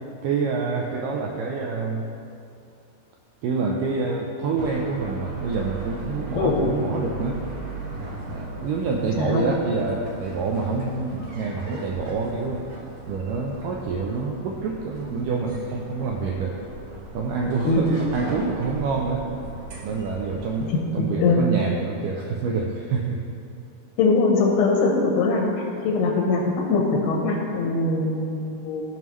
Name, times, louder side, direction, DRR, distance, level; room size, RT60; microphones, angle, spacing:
voice 1, 0.2-2.0 3.4-7.4 8.3-12.7 13.1-16.5 17.1-19.3 19.8-23.2, right 4 dB, 90° right, 0 dB, 1.9 m, -27 dB
sound 1, 4.6-20.8, right 2 dB, 70° right, 1.5 m, -38 dB
voice 2, 17.6-17.9 20.7-21.5 24.0-25.5 25.8-26.4 26.7-28.8, left 3 dB, 85° left, -1 dB, 2.9 m, -22 dB
15.0 x 5.5 x 3.1 m, 2.6 s
omnidirectional pair, 4.4 m